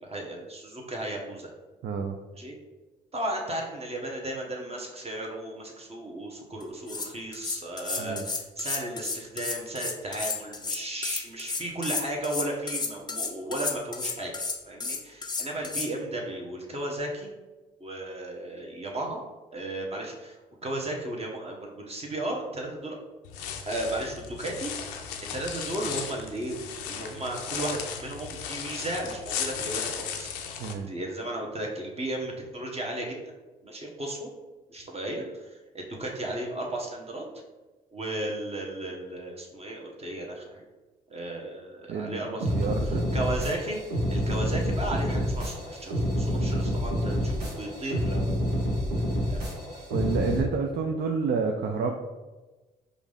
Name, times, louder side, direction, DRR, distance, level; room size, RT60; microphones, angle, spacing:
voice 1, 0.0-1.5 2.3-2.5 3.1-14.3 14.7-17.3 17.8-19.2 19.5-23.0 23.7-24.7 25.3-30.3 30.9-33.2 33.6-34.3 34.7-37.2 37.9-40.6 41.1-48.2 48.9-49.6, right 1 dB, 30° right, 0 dB, 1.2 m, -35 dB
voice 2, 1.8-2.2 8.0-8.2 30.6-30.9 41.9-42.2 42.5-43.0 46.4-46.5 49.9-51.9, right 5 dB, 55° right, 3 dB, 0.5 m, -29 dB
sound 1, 6.6-6.7 6.9-15.9, left 4 dB, 20° left, 0.6 m, -32 dB
sound 2, 23.2-30.7, left 7 dB, 85° left, 0.4 m, -36 dB
sound 3, 42.4-50.4, equal, 85° right, 1.0 m, -28 dB
4.9 x 2.6 x 3.5 m, 1.2 s
hypercardioid pair, 45°, 20 cm